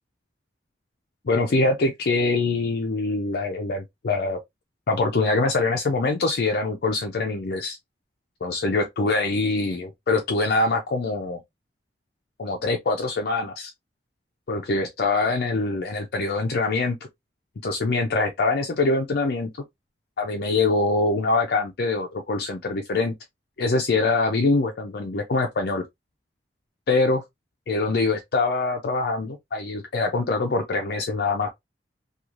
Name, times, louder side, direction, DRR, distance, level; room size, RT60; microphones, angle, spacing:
voice 1, 1.2-4.4 4.9-7.8 8.4-11.4 12.4-13.7 14.5-17.0 17.6-19.5 20.2-23.1 23.6-25.8 26.9-27.2 27.7-31.5, left 3 dB, 65° left, 0.5 m, -24 dB
3.0 x 2.3 x 2.4 m
head